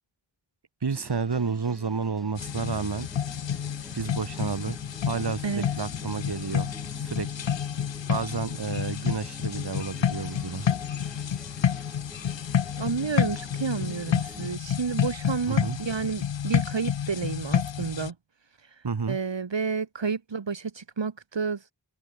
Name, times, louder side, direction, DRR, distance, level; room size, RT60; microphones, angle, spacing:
voice 1, 0.8-3.1 3.9-4.8 5.1-6.7 7.0-7.3 8.1-10.7 15.5-15.8 18.8-19.2, right 5 dB, 60° right, 1.6 m, -30 dB
sound 1, 0.9-14.5, equal, ahead, 5.6 m, -48 dB
sound 2, 2.4-18.1, left 8 dB, 80° left, 0.7 m, -29 dB
voice 2, 12.8-18.1 19.1-21.6, right 5 dB, 80° right, 1.6 m, -30 dB
wide cardioid pair, 50°, 44 cm